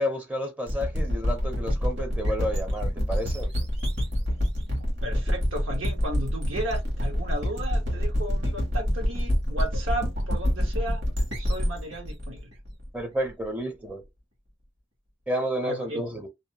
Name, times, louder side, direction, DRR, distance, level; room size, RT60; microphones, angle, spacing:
voice 1, 0.0-3.5 12.9-14.0 15.3-16.3, equal, 10° right, 0.5 m, -30 dB
sound 1, 0.7-13.3, equal, 65° right, 1.3 m, -27 dB
voice 2, 5.0-11.0 11.4-12.5 15.6-16.0, right 1 dB, 85° right, 1.2 m, -34 dB
2.6 x 2.1 x 2.8 m
head